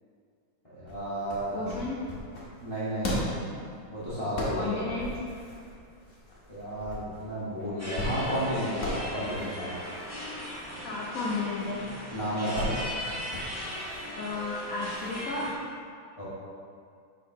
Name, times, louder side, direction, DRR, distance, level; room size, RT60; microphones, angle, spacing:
voice 1, 0.6-1.5 2.6-3.3 3.9-4.8 6.5-9.7 12.1-12.7 16.2-16.3, equal, 20° left, -12 dB, 1.0 m, -32 dB
sound 1, 0.9-15.5, left 1 dB, 50° left, 1.0 m, -39 dB
voice 2, 1.5-2.0 4.5-5.2 10.8-11.9 14.2-15.5, left 3 dB, 90° left, -4 dB, 0.7 m, -33 dB
sound 2, 7.8-15.5, equal, 10° right, 1.2 m, -38 dB
6.4 x 5.4 x 2.8 m, 2.3 s
omnidirectional pair, 2.3 m